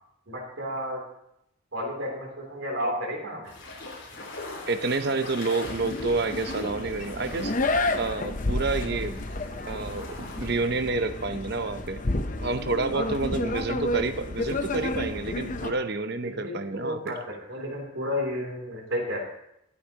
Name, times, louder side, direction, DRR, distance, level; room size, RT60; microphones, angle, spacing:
voice 1, 0.3-1.0 1.7-3.5 12.9-13.1 15.6-15.7 16.2-19.2, equal, 70° right, 0 dB, 3.2 m, -32 dB
sound 1, 3.4-10.5, left 2 dB, 55° left, 5.0 m, -42 dB
voice 2, 4.7-7.5 7.9-9.2 9.7-12.0 12.4-17.1, right 3 dB, 50° right, 10 dB, 0.8 m, -29 dB
sound 2, 5.6-15.7, left 2 dB, 40° left, 0.7 m, -31 dB
23.0 x 8.4 x 2.9 m, 0.80 s
head